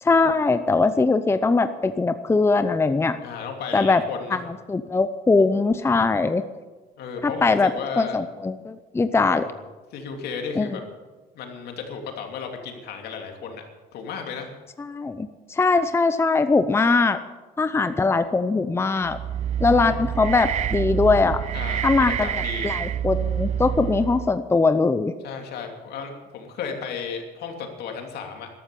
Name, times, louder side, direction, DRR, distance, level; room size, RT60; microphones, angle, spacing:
voice 1, 0.0-3.2 3.7-4.0 4.3-4.4 4.7-6.4 7.2-7.7 8.0-9.5 10.6-10.8 14.8-17.2 17.6-19.2 19.6-21.4 21.8-22.3 22.6-25.1, left 3 dB, 15° left, 11 dB, 0.7 m, -21 dB
voice 2, 3.2-4.4 7.0-8.2 9.1-9.5 9.9-10.8 11.3-13.6 13.9-14.5 19.7-20.1 21.5-22.7 25.2-28.5, left 6 dB, 75° left, 3 dB, 2.9 m, -34 dB
sound 1, 19.0-24.4, right 9 dB, 45° right, 0.4 m, -27 dB
13.5 x 12.5 x 7.0 m, 1.3 s
cardioid pair, 105°, 17 cm